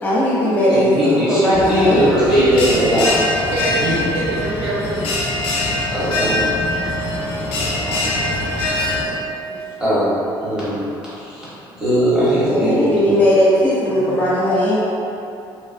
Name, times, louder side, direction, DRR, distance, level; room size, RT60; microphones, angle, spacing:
voice 1, 0.0-2.1 12.5-14.8, left 1 dB, 20° left, -9 dB, 0.7 m, -17 dB
voice 2, 0.7-3.1 3.8-3.9 5.9-6.4 9.8-10.1 10.4-10.8 11.1-11.5 11.8-13.1, right 1 dB, 10° right, -12 dB, 1.0 m, -19 dB
Bell, 1.5-9.0, left 2 dB, 75° left, 0.6 m, -22 dB
voice 3, 3.5-5.1 7.5-9.6 13.8-14.3, right 2 dB, 80° right, -5 dB, 0.6 m, -29 dB
2.9 x 2.5 x 2.5 m, 2.7 s
cardioid pair, 165°, 9 cm